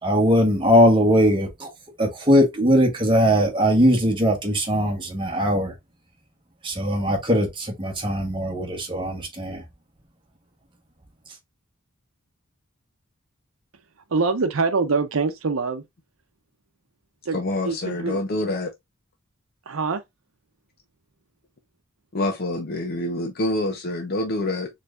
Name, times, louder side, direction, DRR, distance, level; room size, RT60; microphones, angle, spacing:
voice 1, 0.0-1.7 2.0-5.7 6.6-9.6, equal, 25° right, 1.3 m, -20 dB
voice 2, 14.1-15.8 17.3-17.4 17.6-18.2 19.7-20.0, right 4 dB, 80° right, 0.7 m, -24 dB
voice 3, 17.3-18.7 22.1-24.7, left 2 dB, 50° left, 0.6 m, -26 dB
4.4 x 3.3 x 2.5 m
head